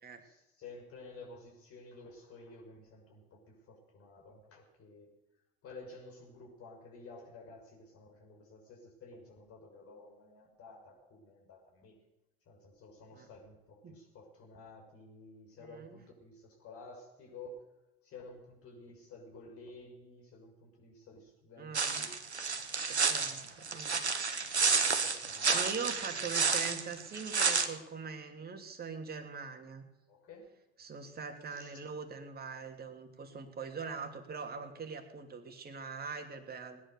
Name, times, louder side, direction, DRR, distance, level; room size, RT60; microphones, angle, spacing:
voice 1, 0.2-5.1 5.6-11.9 12.5-17.7 18.0-22.1 23.3-23.6 24.6-25.6 26.1-26.4 30.1-30.5 31.5-31.8, left 3 dB, 45° left, 1 dB, 6.1 m, -52 dB
voice 2, 15.6-16.0 21.6-22.0 22.9-24.0 25.5-29.8 30.8-36.8, right 5 dB, 30° right, 6 dB, 2.9 m, -42 dB
sound 1, 21.7-27.7, right 4 dB, 90° right, 1.3 m, -30 dB
19.5 x 10.5 x 6.8 m, 0.96 s
figure-of-eight pair, 75°, 33 cm